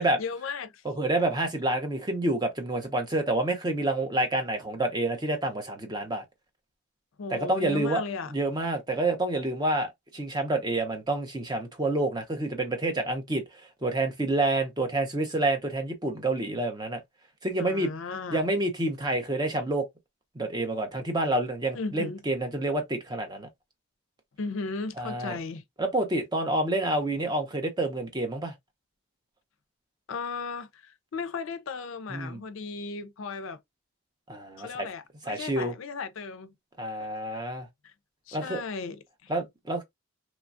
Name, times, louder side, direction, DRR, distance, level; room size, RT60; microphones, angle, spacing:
voice 1, 0.2-0.8 7.2-8.3 17.6-18.5 21.7-22.2 24.4-25.6 30.1-33.6 34.6-36.5 37.0-37.4 37.8-37.9 38.3-39.3, left 4 dB, 65° left, 0.4 m, -36 dB
voice 2, 0.8-6.2 7.3-8.0 8.3-17.0 17.4-17.9 18.3-19.9 20.3-23.5 25.0-25.4 25.8-28.5 32.1-32.4 34.3-34.9 35.3-35.7 36.8-37.7 38.3-38.6 39.3-39.8, right 2 dB, 20° right, 0.6 m, -28 dB
3.0 x 2.3 x 2.4 m
head